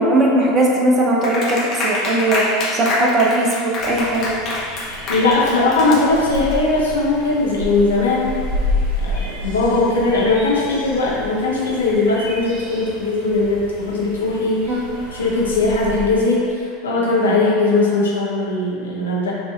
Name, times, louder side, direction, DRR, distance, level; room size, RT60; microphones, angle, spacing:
voice 1, 0.0-4.4 14.7-14.8, right 1 dB, 30° right, -2 dB, 0.6 m, -18 dB
Clapping, 1.2-6.5, left 2 dB, 35° left, 0.8 m, -25 dB
sound 1, 3.8-16.0, left 1 dB, 90° left, 1.3 m, -30 dB
voice 2, 5.1-8.4 9.0-14.8 15.1-19.3, left 3 dB, 70° left, -5 dB, 0.8 m, -19 dB
5.9 x 2.7 x 2.4 m, 2.3 s
figure-of-eight pair, 80°, 0 cm